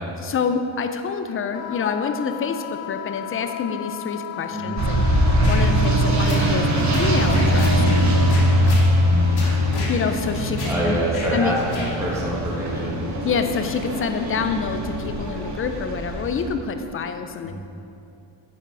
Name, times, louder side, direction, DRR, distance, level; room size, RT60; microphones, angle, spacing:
voice 1, 0.2-8.9 9.9-11.0 11.3-11.5 13.2-17.5, left 5 dB, 30° left, 7 dB, 0.4 m, -27 dB
Wind instrument woodwind instrument, 1.5-9.3, left 11 dB, 80° left, 0.6 m, -36 dB
sound 1, 4.8-16.5, equal, 40° right, 1.0 m, -21 dB
sound 2, 5.4-5.7 6.2-6.5 6.9-8.0 8.3-8.9 9.4-9.9 10.6-10.8 11.1-11.3 11.7-11.9, left 2 dB, 55° left, 1.7 m, -31 dB
voice 2, 9.0-9.7 10.6-13.0 17.4-17.5, right 1 dB, 5° right, -6 dB, 1.7 m, -26 dB
8.7 x 5.7 x 4.8 m, 2.6 s
cardioid pair, 165°, 46 cm